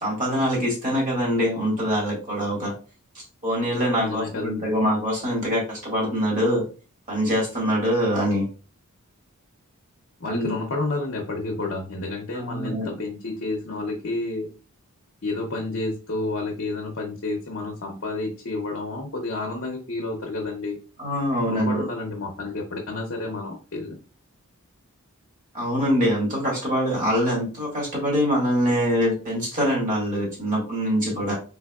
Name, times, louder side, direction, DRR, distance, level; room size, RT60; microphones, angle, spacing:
voice 1, 0.0-2.7 3.1-6.6 7.1-8.5 10.2-10.6 12.3-12.9 21.0-21.8 25.5-31.3, equal, 35° right, -3 dB, 1.6 m, -24 dB
voice 2, 3.9-4.8 10.2-14.5 15.2-20.8 21.4-24.0, left 2 dB, 55° left, 0 dB, 0.7 m, -30 dB
3.4 x 3.3 x 2.3 m, 0.34 s
head